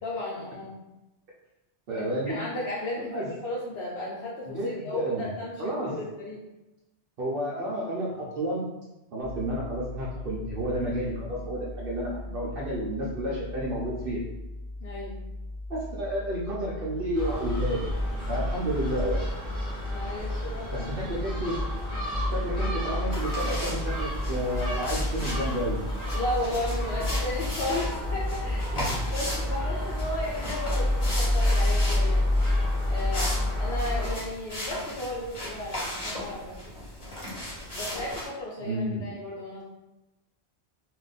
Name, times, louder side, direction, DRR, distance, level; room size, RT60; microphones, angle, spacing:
voice 1, 0.0-0.8 2.0-6.4 14.8-15.2 19.9-20.9 26.1-28.8 29.1-32.2 32.9-36.7 37.7-39.6, left 1 dB, 75° left, -6 dB, 0.9 m, -34 dB
voice 2, 1.9-2.4 3.0-3.3 4.5-5.3 5.6-5.9 7.2-8.7 9.1-14.2 15.7-18.0 18.3-19.2 20.7-21.6 22.3-25.8 28.7-29.0 38.6-39.1, right 1 dB, 65° right, -5 dB, 0.8 m, -31 dB
sound 1, 9.2-28.5, left 2 dB, 25° right, 0.4 m, -39 dB
Gull seagull, 17.1-34.1, left 1 dB, 5° left, 0.9 m, -29 dB
sound 2, 23.1-38.3, left 1 dB, 30° left, 0.9 m, -37 dB
2.4 x 2.1 x 3.9 m, 0.98 s
omnidirectional pair, 1.1 m